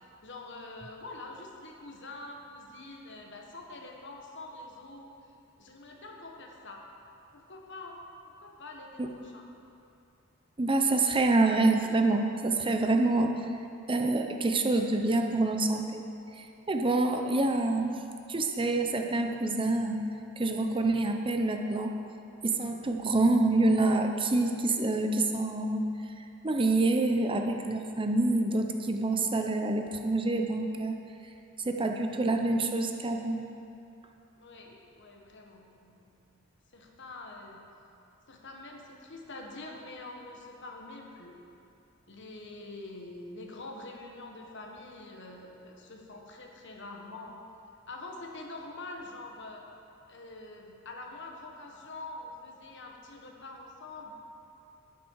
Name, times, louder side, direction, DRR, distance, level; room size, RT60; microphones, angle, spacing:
voice 1, 0.2-5.1 5.6-6.8 7.3-8.0 8.3-9.5 34.4-36.4 36.7-37.6 38.3-41.4 42.1-47.3 47.9-49.6 50.1-54.1, left 2 dB, 60° left, 1 dB, 1.5 m, -45 dB
voice 2, 10.6-13.3 13.9-16.0 16.4-17.9 18.3-20.0 20.4-21.9 22.4-25.8 26.2-31.0 31.6-33.4, right 2 dB, 25° right, 4 dB, 0.7 m, -27 dB
12.0 x 9.8 x 4.7 m, 2.6 s
head